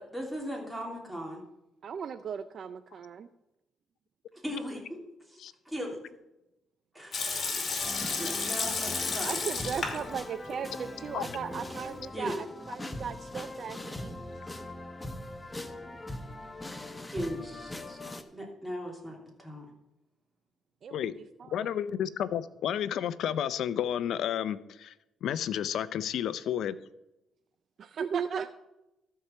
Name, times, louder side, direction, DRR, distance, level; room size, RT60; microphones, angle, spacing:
voice 1, 0.0-1.4 4.4-5.0 5.3-5.4 5.6-6.0 6.9-9.7 12.1-12.3 17.1-18.0 18.3-19.7, equal, 5° right, -1 dB, 3.0 m, -38 dB
voice 2, 1.8-3.3 9.2-14.3 20.8-21.2 21.5-21.7 27.8-28.5, right 7 dB, 55° right, 11 dB, 0.5 m, -37 dB
Water tap faucet / Sink (filling or washing) / Liquid, 7.1-10.1 10.4-10.5 11.2-11.8, left 4 dB, 40° left, 2.5 m, -32 dB
sound 1, 7.8-18.2, left 1 dB, 15° left, 0.9 m, -41 dB
voice 3, 21.5-24.9 25.2-26.8, left 10 dB, 75° left, 16 dB, 0.5 m, -31 dB
13.0 x 4.7 x 6.9 m, 0.91 s
cardioid pair, 90°, 0 cm